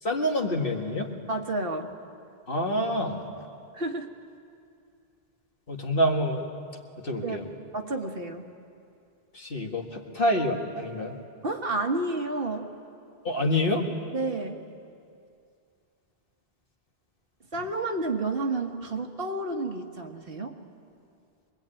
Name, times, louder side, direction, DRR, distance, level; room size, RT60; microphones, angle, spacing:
voice 1, 0.0-1.1 2.5-3.2 5.7-6.4 7.0-7.4 9.3-11.2 13.2-13.9, left 1 dB, 60° left, 1 dB, 2.2 m, -27 dB
voice 2, 1.3-1.9 3.7-4.1 7.2-7.4 7.7-8.5 11.4-12.7 14.1-14.6 17.5-20.6, right 2 dB, 65° right, 4 dB, 1.7 m, -30 dB
24.5 x 21.5 x 9.0 m, 2.4 s
omnidirectional pair, 1.1 m